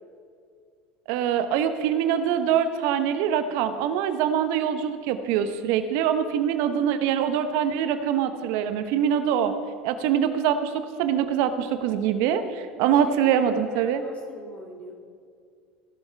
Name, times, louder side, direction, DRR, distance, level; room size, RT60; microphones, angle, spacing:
voice 1, 1.1-9.5 9.8-10.7 11.0-14.0, right 9 dB, 65° right, 10 dB, 0.9 m, -24 dB
voice 2, 12.7-14.9, left 1 dB, 30° left, 0 dB, 2.9 m, -43 dB
16.0 x 11.5 x 3.4 m, 2.2 s
hypercardioid pair, 75°, 5 cm